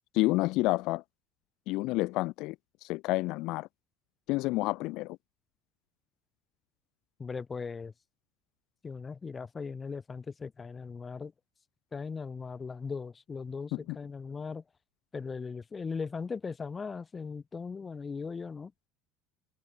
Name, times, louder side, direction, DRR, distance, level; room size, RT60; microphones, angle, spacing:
voice 1, 0.1-1.0 1.7-2.6 2.8-3.7 4.3-5.2 13.7-14.0, left 21 dB, 65° left, 1.2 m, -29 dB
voice 2, 7.2-7.9 8.8-11.3 11.9-14.6 15.1-18.7, left 5 dB, 20° left, 1.8 m, -38 dB
open air
cardioid pair, 130°, 0 cm